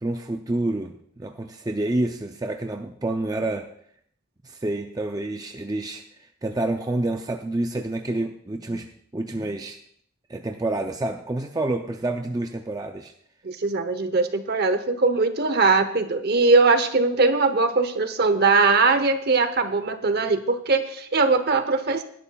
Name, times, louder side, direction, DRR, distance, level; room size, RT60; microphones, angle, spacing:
voice 1, 0.0-3.7 4.4-8.9 9.1-9.8 10.3-13.1, right 2 dB, 15° right, 5 dB, 0.4 m, -28 dB
voice 2, 13.4-22.0, right 3 dB, 50° right, 10 dB, 0.8 m, -21 dB
18.0 x 11.0 x 2.3 m, 0.65 s
head